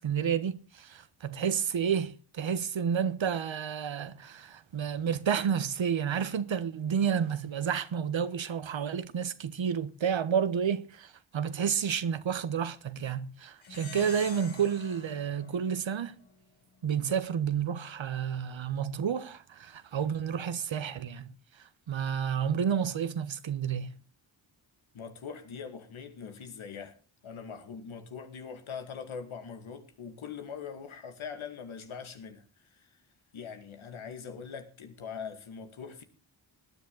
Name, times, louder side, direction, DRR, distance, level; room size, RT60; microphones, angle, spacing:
voice 1, 0.0-16.2 16.8-21.3 21.6-24.0, right 7 dB, 70° right, 1.3 m, -30 dB
Plucked string instrument, 13.6-16.4, left 5 dB, 70° left, 3.4 m, -47 dB
voice 2, 24.9-33.0 33.3-36.0, left 6 dB, 90° left, 2.2 m, -42 dB
19.0 x 10.5 x 4.0 m
cardioid pair, 50°, 47 cm